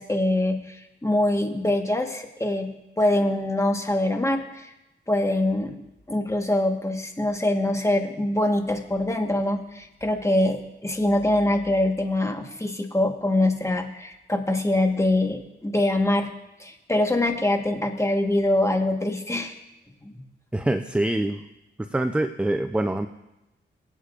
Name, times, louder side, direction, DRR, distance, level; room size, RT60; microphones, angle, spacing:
voice 1, 0.0-2.7 3.0-4.7 5.1-5.8 6.1-16.3 16.6-19.6 20.0-20.1, left 1 dB, 15° left, 4 dB, 1.4 m, -24 dB
voice 2, 20.5-21.5 21.8-23.1, right 1 dB, 5° right, 7 dB, 0.5 m, -25 dB
22.5 x 8.2 x 2.5 m, 0.93 s
cardioid pair, 75°, 20 cm